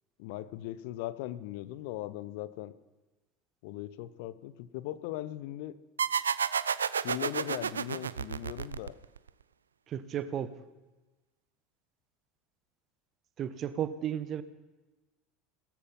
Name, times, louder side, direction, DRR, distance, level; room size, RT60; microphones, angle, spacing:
voice 1, 0.2-2.7 3.6-5.7 7.0-8.9, left 14 dB, 60° left, 15 dB, 0.8 m, -39 dB
sound 1, 6.0-9.3, right 7 dB, 75° right, 0.4 m, -31 dB
voice 2, 9.9-10.6 13.4-14.4, right 9 dB, 40° right, 14 dB, 1.2 m, -34 dB
18.5 x 13.5 x 5.5 m, 1.2 s
figure-of-eight pair, 70°, 0 cm